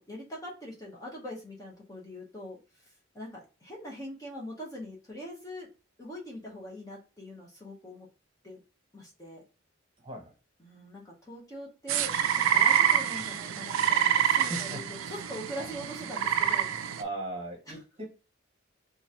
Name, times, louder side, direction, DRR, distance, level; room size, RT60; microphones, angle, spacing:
voice 1, 0.0-5.7 6.0-8.1 8.4-8.6 8.9-9.4 10.6-17.0 17.7-17.8, equal, 15° left, -2 dB, 0.8 m, -43 dB
voice 2, 10.0-10.3 14.4-14.8 15.6-15.7 17.0-18.0, right 1 dB, 25° right, 1 dB, 1.0 m, -38 dB
sound 1, 11.9-17.0, right 9 dB, 85° right, 0.4 m, -27 dB
3.0 x 2.4 x 4.1 m, 0.32 s
head